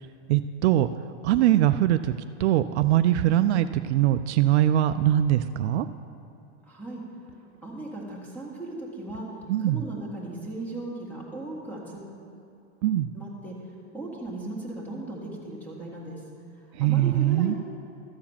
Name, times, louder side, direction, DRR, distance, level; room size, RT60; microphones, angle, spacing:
voice 1, 0.3-0.9 1.2-2.1 2.4-5.9 9.5-9.8 12.8-13.1 16.7-17.5, right 12 dB, 65° right, 11 dB, 0.5 m, -22 dB
voice 2, 6.7-7.0 7.6-9.3 9.6-12.2 13.1-13.5 13.9-16.2 16.8-17.6, right 2 dB, 5° left, -3 dB, 1.9 m, -37 dB
13.5 x 4.7 x 7.3 m, 2.6 s
supercardioid pair, 140°, 35 cm